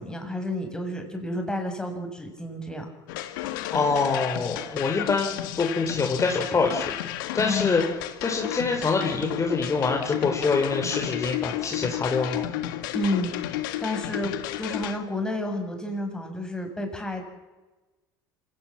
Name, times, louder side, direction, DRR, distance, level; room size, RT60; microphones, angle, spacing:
voice 1, 0.0-2.8 7.4-7.8 12.9-17.2, left 1 dB, 5° left, 2 dB, 6.8 m, -31 dB
sound 1, 3.1-15.0, left 13 dB, 80° left, 1.8 m, -32 dB
voice 2, 3.7-6.9 7.3-7.8 8.2-12.4, left 4 dB, 30° left, 1 dB, 4.0 m, -25 dB
27.0 x 17.5 x 7.5 m, 1.1 s
hypercardioid pair, 80°, 11 cm